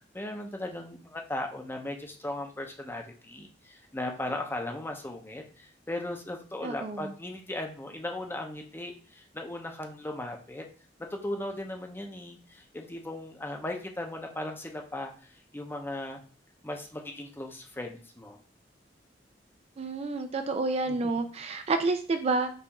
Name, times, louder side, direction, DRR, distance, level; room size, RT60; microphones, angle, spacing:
voice 1, 0.0-10.6 11.0-16.2 16.6-18.4 20.9-21.0, left 1 dB, 10° left, 3 dB, 0.6 m, -37 dB
voice 2, 6.6-7.1 19.8-22.5, right 3 dB, 35° right, 7 dB, 0.3 m, -29 dB
5.4 x 2.4 x 2.9 m, 0.41 s
head